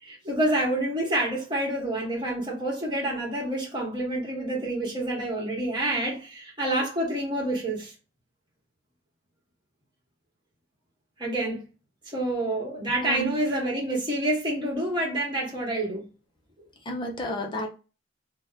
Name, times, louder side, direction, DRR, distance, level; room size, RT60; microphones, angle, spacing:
voice 1, 0.0-7.9 11.2-11.6 12.1-16.1, right 1 dB, 25° right, 1.2 m, -28 dB
voice 2, 13.0-13.4 16.9-17.7, equal, 25° left, 0.5 m, -31 dB
2.8 x 2.1 x 3.4 m
head